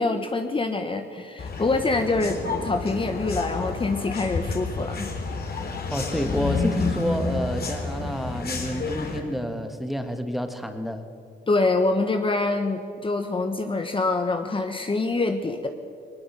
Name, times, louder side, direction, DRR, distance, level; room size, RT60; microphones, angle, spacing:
voice 1, 0.0-5.1 11.5-15.7, left 3 dB, 25° left, 6 dB, 1.3 m, -25 dB
sound 1, 1.4-9.2, left 4 dB, 50° left, 3.9 m, -30 dB
voice 2, 5.9-11.1, equal, ahead, 7 dB, 1.9 m, -29 dB
20.0 x 19.0 x 7.5 m, 2.3 s
cardioid pair, 90°, 20 cm